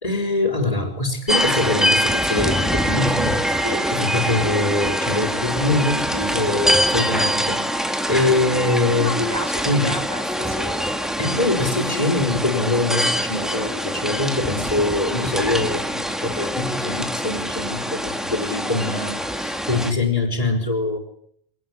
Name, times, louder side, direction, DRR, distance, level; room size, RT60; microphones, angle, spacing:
voice 1, 0.0-3.6 3.9-9.3 9.6-10.0 11.2-21.0, left 2 dB, 35° left, -3 dB, 5.5 m, -23 dB
sound 1, 1.3-19.9, equal, ahead, 2.3 m, -24 dB
voice 2, 9.0-10.7, left 1 dB, 15° right, 0 dB, 6.5 m, -30 dB
26.0 x 19.5 x 9.9 m, 0.68 s
omnidirectional pair, 1.0 m